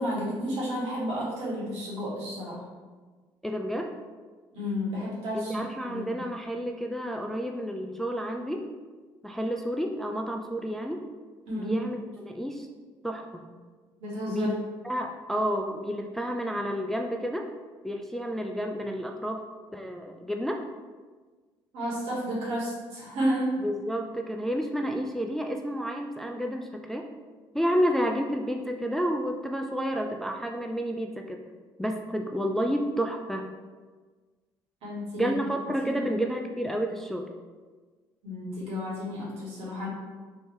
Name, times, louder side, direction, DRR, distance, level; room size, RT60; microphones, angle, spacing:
voice 1, 0.0-2.6 4.5-6.2 11.5-11.7 14.0-14.5 21.7-23.6 34.8-35.3 35.8-36.1 38.2-39.9, equal, 60° right, -6 dB, 1.4 m, -32 dB
voice 2, 3.4-4.0 5.3-8.7 9.2-11.1 11.6-12.7 13.0-13.4 14.3-14.5 14.8-17.5 17.8-19.4 19.7-20.6 23.6-27.1 27.5-31.4 31.8-33.5 35.2-37.3, equal, 5° left, 2 dB, 0.3 m, -30 dB
3.2 x 2.7 x 3.2 m, 1.4 s
hypercardioid pair, 50°, 12 cm